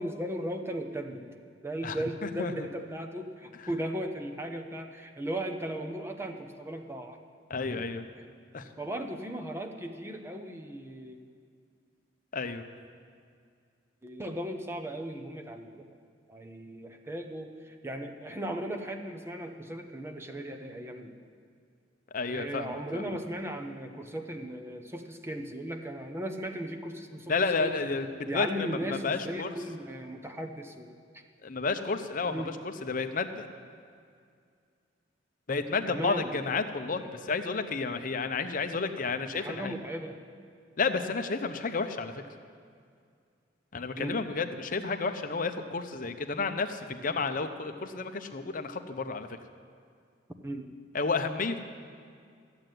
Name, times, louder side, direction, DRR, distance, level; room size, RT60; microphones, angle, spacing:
voice 1, 0.0-1.4 1.6-7.2 7.7-7.8 8.8-11.2 14.0-15.9 16.3-21.2 22.3-27.8 28.3-30.9 32.3-32.5 35.9-36.4 39.3-40.2 44.0-44.2 50.4-50.7, right 1 dB, 15° right, 5 dB, 0.9 m, -37 dB
voice 2, 1.8-2.5 3.6-3.7 7.5-8.1 8.5-8.7 12.3-12.6 22.1-23.1 27.3-28.1 28.3-29.6 31.4-33.5 35.5-39.8 40.8-42.2 43.7-49.3 50.9-51.6, left 4 dB, 45° left, 8 dB, 0.7 m, -31 dB
13.5 x 7.8 x 9.2 m, 2.3 s
head